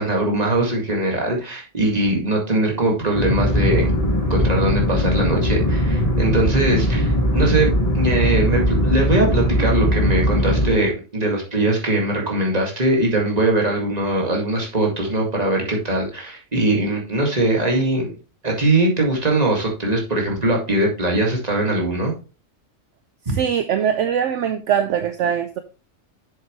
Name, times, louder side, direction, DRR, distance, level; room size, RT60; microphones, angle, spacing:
voice 1, 0.0-3.9 4.3-18.2 18.4-22.1 23.3-23.4, right 2 dB, 30° right, 2.1 m, -21 dB
sound 1, 3.1-10.7, equal, 30° left, 1.4 m, -19 dB
voice 2, 23.3-25.6, right 8 dB, 70° right, 0.9 m, -22 dB
7.5 x 7.3 x 3.1 m
omnidirectional pair, 1.4 m